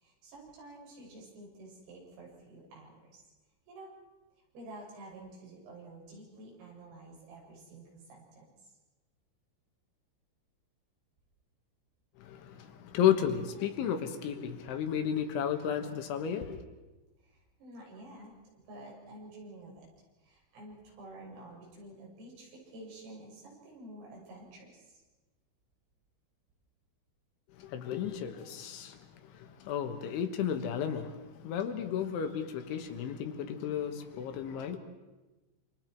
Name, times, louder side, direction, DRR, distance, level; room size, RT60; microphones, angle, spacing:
voice 1, 0.0-3.2 3.7-3.9 4.5-8.4 17.2-18.3 18.7-19.9 20.2-25.0, right 2 dB, 90° right, -3 dB, 9.4 m, -50 dB
voice 2, 12.2-16.6 27.6-34.8, left 9 dB, 70° left, 6 dB, 3.5 m, -33 dB
28.5 x 27.0 x 4.6 m, 1.1 s
omnidirectional pair, 5.8 m